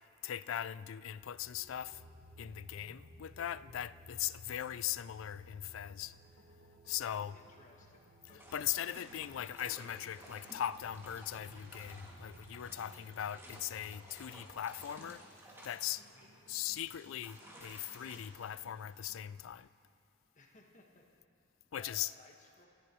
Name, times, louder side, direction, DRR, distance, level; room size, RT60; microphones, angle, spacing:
voice 1, 0.2-2.0 2.4-6.1 6.9-7.4 8.5-15.2 15.6-16.0 16.5-19.7 21.7-22.1, left 11 dB, 75° left, 0.4 m, -39 dB
sound 1, 1.3-14.7, left 1 dB, 50° right, 1.5 m, -58 dB
sound 2, 4.2-19.6, right 1 dB, 65° right, 1.1 m, -66 dB
voice 2, 7.3-8.6 16.1-16.5 20.3-21.0 21.7-22.7, left 2 dB, 40° left, 1.6 m, -61 dB
sound 3, 8.4-19.5, equal, 15° right, 2.3 m, -56 dB
27.0 x 13.0 x 3.1 m
head